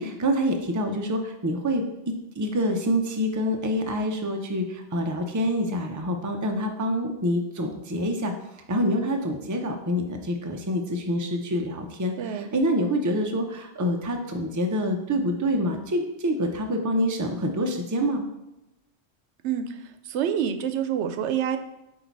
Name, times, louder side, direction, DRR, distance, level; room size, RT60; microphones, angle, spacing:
voice 1, 0.0-8.3 8.7-18.2, equal, 20° right, 3 dB, 0.5 m, -26 dB
voice 2, 12.2-12.5 19.4-19.8 20.0-21.6, right 9 dB, 85° right, 8 dB, 0.9 m, -27 dB
8.0 x 2.8 x 4.5 m, 0.92 s
omnidirectional pair, 1.1 m